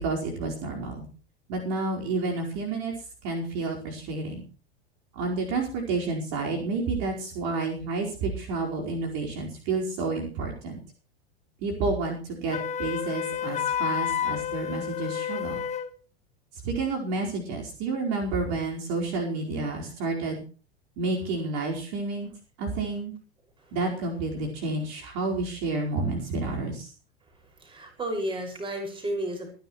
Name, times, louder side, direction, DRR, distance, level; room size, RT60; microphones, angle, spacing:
voice 1, 0.0-1.1 1.5-2.9 3.2-4.4 5.1-10.8 11.6-15.6 16.6-20.4 21.0-22.3 22.6-23.1 23.7-26.9, right 3 dB, 45° right, 0 dB, 4.7 m, -30 dB
Wind instrument woodwind instrument, 12.5-15.9, left 9 dB, 20° left, 1.8 m, -30 dB
voice 2, 27.6-29.5, right 1 dB, 15° right, 4 dB, 5.9 m, -32 dB
25.5 x 10.5 x 3.2 m, 0.36 s
figure-of-eight pair, 90°, 32 cm